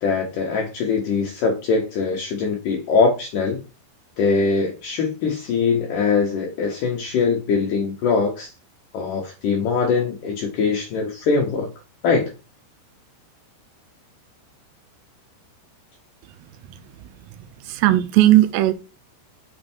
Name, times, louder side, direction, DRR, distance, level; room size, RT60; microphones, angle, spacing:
voice 1, 0.0-3.6 4.2-8.5 8.9-11.7 12.0-12.3, left 4 dB, 75° left, 1 dB, 1.9 m, -22 dB
voice 2, 17.6-18.7, right 15 dB, 80° right, 13 dB, 2.7 m, -16 dB
6.5 x 4.4 x 4.3 m, 0.30 s
omnidirectional pair, 5.1 m